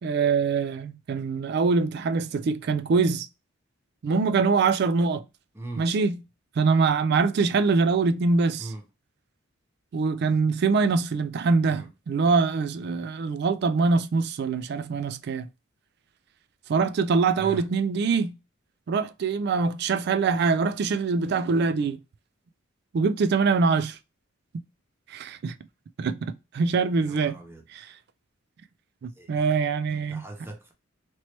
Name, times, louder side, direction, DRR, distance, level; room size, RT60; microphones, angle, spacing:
voice 1, 0.0-3.3 4.0-5.2 5.8-6.2 6.6-8.7 9.9-15.5 16.7-18.4 18.9-22.0 22.9-24.0 24.5-24.6 25.1-25.5 26.0-27.4 27.7-27.9 29.0-30.2, right 4 dB, 50° right, 0.3 m, -24 dB
voice 2, 5.5-5.9 8.6-8.8 11.6-11.9 17.4-17.7 27.0-27.7 29.1-29.3 29.9-30.7, right 2 dB, 10° right, 0.6 m, -40 dB
3.0 x 3.0 x 2.9 m
head